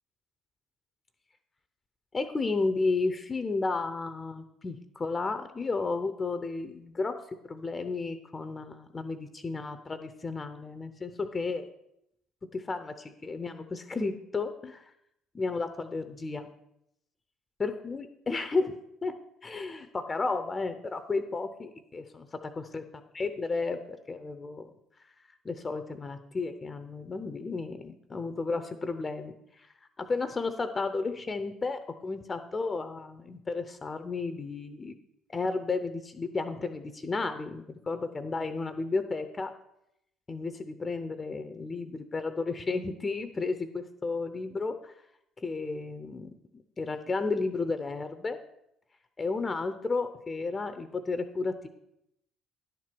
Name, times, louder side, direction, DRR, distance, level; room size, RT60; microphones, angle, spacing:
voice 1, 2.1-11.7 12.4-14.9 15.3-16.5 17.6-18.7 19.0-22.8 23.2-24.7 25.4-29.7 30.0-35.0 35.3-39.5 40.3-44.9 45.4-48.4 49.2-51.7, left 3 dB, 30° left, 10 dB, 0.7 m, -33 dB
10.5 x 4.6 x 6.0 m, 0.79 s
hypercardioid pair, 55°, 0 cm